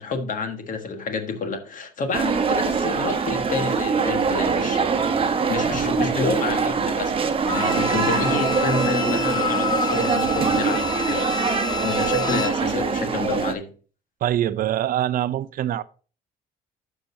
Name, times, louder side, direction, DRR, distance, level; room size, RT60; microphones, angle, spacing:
voice 1, 0.0-4.8 5.3-13.7, left 4 dB, 50° left, 1.6 m, -29 dB
sound 1, 2.1-13.5, right 5 dB, 35° right, 1.0 m, -23 dB
Bowed string instrument, 7.5-12.7 13.0-13.1, left 7 dB, 25° left, 0.6 m, -29 dB
voice 2, 14.2-15.8, right 12 dB, 55° right, 0.6 m, -24 dB
11.5 x 5.9 x 2.8 m
cardioid pair, 110°, 17 cm